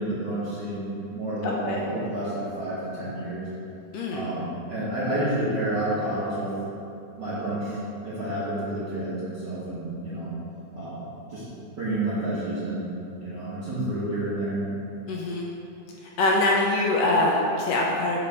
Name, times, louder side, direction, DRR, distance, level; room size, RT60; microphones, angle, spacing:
voice 1, 0.0-3.5 4.1-6.5 7.2-10.3 10.7-11.0 11.3-11.4 11.8-12.8 13.2-14.6, right 1 dB, 55° right, -10 dB, 1.2 m, -30 dB
voice 2, 1.4-1.8 3.9-4.3 15.1-15.5 16.2-18.2, left 2 dB, 85° left, -2 dB, 1.5 m, -24 dB
7.4 x 3.2 x 5.7 m, 2.7 s
omnidirectional pair, 3.5 m